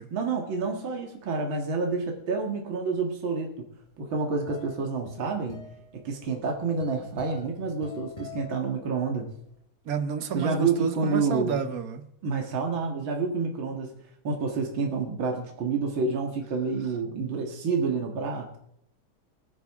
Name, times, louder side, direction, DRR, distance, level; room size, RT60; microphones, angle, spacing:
voice 1, 0.1-3.7 4.0-5.6 5.9-9.3 10.3-11.6 12.2-13.9 14.2-18.6, right 4 dB, 70° right, 2 dB, 2.6 m, -28 dB
sound 1, 3.9-9.3, left 5 dB, 15° left, 4.5 m, -47 dB
voice 2, 9.8-12.0, right 7 dB, 50° right, 10 dB, 1.2 m, -30 dB
22.0 x 10.5 x 3.6 m, 0.73 s
omnidirectional pair, 2.3 m